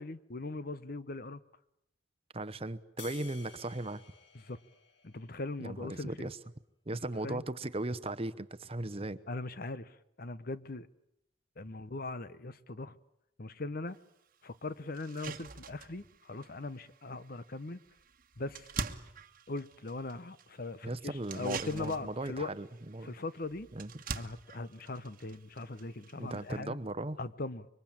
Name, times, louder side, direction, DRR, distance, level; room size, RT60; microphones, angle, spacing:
voice 1, 0.0-1.4 4.3-4.6 5.0-6.3 7.2-7.4 9.3-10.9 11.6-13.0 13.4-14.0 14.4-17.8 18.4-18.7 19.5-22.5 23.0-23.7 24.1-26.8 27.2-27.7, left 2 dB, 50° left, 1.0 m, -40 dB
voice 2, 2.3-4.0 5.6-6.4 6.9-9.2 20.8-23.1 23.7-23.9 26.2-27.2, right 2 dB, 30° right, 0.9 m, -37 dB
sound 1, 3.0-5.6, left 6 dB, 75° left, 2.1 m, -53 dB
sound 2, 13.9-14.0 14.5-14.6 14.9-26.6, right 5 dB, 50° right, 1.4 m, -46 dB
26.0 x 23.5 x 8.8 m
head